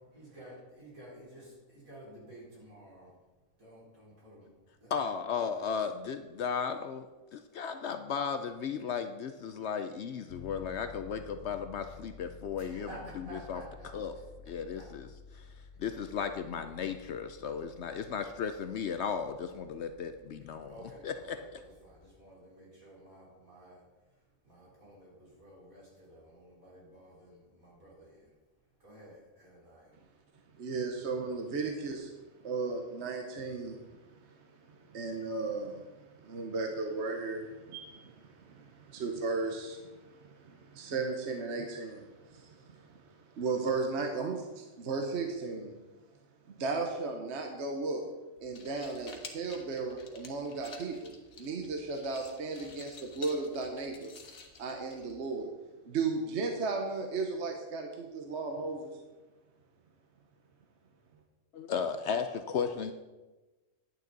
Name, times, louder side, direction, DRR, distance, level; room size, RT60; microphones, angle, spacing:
voice 1, 0.1-3.2 3.6-5.1 5.4-6.0 12.5-14.3 14.7-14.9 15.2-15.3 15.7-15.8 20.7-28.3 28.8-30.0, right 1 dB, 75° right, -5 dB, 4.4 m, -52 dB
voice 2, 4.9-7.1 7.3-12.9 13.5-13.6 13.9-14.1 14.5-15.1 15.3-15.4 15.8-20.7 21.0-21.4 61.5-62.9, left 6 dB, 65° left, 8 dB, 0.8 m, -35 dB
sound 1, 10.3-22.2, left 5 dB, 45° left, 1.1 m, -53 dB
voice 3, 30.6-32.1 32.4-45.7 46.5-48.0 48.4-54.1 54.6-55.5 55.8-58.9, right 4 dB, 55° right, 2 dB, 1.2 m, -35 dB
sound 2, 48.4-55.4, left 4 dB, 85° left, 1.7 m, -51 dB
10.5 x 9.1 x 4.0 m, 1.2 s
omnidirectional pair, 1.5 m